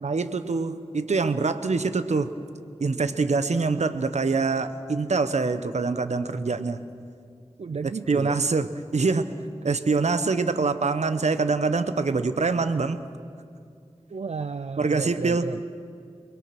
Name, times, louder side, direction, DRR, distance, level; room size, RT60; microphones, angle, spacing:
voice 1, 0.0-2.3 2.8-6.8 8.1-9.3 9.6-13.0 14.8-15.4, right 4 dB, 85° right, 11 dB, 1.0 m, -24 dB
voice 2, 7.6-8.4 14.1-15.6, right 5 dB, 70° right, 11 dB, 0.5 m, -33 dB
29.5 x 21.0 x 6.1 m, 2.3 s
wide cardioid pair, 55°, 11 cm